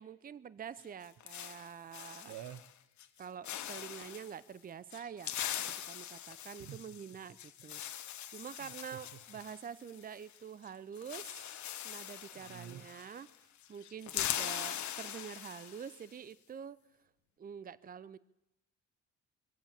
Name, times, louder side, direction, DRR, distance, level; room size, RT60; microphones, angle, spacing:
voice 1, 0.0-2.3 3.2-5.4 5.9-11.5 11.8-13.3 13.7-16.8 17.4-18.2, right 7 dB, 30° right, 19 dB, 0.6 m, -47 dB
sound 1, 0.8-2.7 3.0-3.2 3.4-4.3 4.9-10.4 10.6-10.7 11.0-13.4 13.6-16.0, left 11 dB, 70° left, 1.2 m, -42 dB
voice 2, 2.3-2.6 6.6-6.8 8.6-8.7 12.4-12.9, right 11 dB, 80° right, 17 dB, 0.8 m, -47 dB
23.5 x 8.3 x 7.4 m, 0.88 s
cardioid pair, 90°, 30 cm